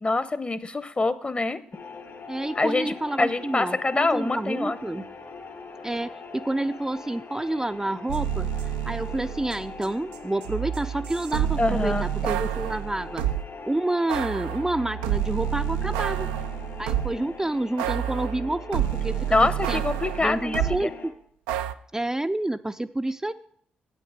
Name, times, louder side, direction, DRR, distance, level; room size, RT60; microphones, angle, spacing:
voice 1, 0.0-1.6 2.6-4.8 11.6-12.0 19.3-20.9, left 3 dB, 30° left, 14 dB, 0.8 m, -25 dB
sound 1, 1.7-21.1, left 4 dB, 65° left, 2.1 m, -42 dB
voice 2, 2.3-5.1 5.8-8.5 8.9-13.2 13.7-16.3 16.8-19.8 20.2-21.1 21.9-23.3, right 1 dB, 15° right, 7 dB, 0.4 m, -29 dB
sound 2, 8.1-9.9 10.1-13.5 14.1-17.3 17.8-20.8 21.5-21.7, right 10 dB, 85° right, 0.4 m, -29 dB
9.2 x 8.5 x 5.0 m, 0.62 s
hypercardioid pair, 45°, 4 cm